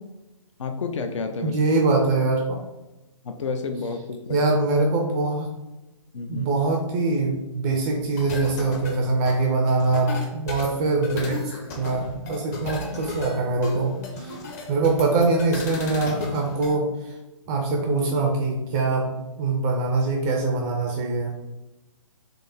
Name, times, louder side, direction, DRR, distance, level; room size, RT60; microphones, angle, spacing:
voice 1, 0.6-1.6 3.2-4.4 6.1-6.5, left 4 dB, 60° left, 6 dB, 0.5 m, -30 dB
voice 2, 1.4-2.6 4.3-5.5 6.3-14.3 14.7-17.1 17.5-19.1 19.4-21.3, right 3 dB, 15° right, 1 dB, 0.4 m, -23 dB
sound 1, 8.2-16.8, left 2 dB, 30° left, 0.7 m, -34 dB
3.5 x 3.3 x 4.0 m, 1.0 s
figure-of-eight pair, 140°, 17 cm